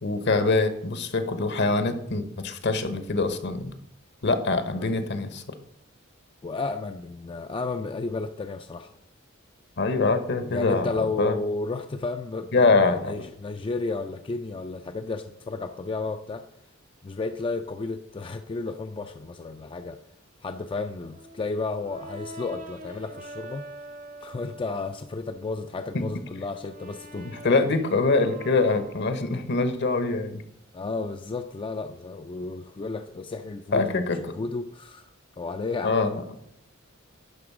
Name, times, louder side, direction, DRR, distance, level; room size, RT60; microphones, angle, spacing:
voice 1, 0.0-3.7 4.2-5.4 9.8-10.9 11.2-11.4 12.5-13.2 25.9-26.1 27.2-30.4 33.7-34.2 35.8-36.2, left 3 dB, 60° left, 10 dB, 0.9 m, -24 dB
voice 2, 6.4-9.0 10.5-16.4 17.0-20.0 20.4-23.7 24.2-27.5 30.7-35.1 35.4-36.0, left 3 dB, 25° left, 7 dB, 0.3 m, -32 dB
Brass instrument, 21.1-25.1 25.6-29.7, right 1 dB, 40° right, 0.8 m, -44 dB
11.0 x 3.9 x 6.0 m, 0.75 s
head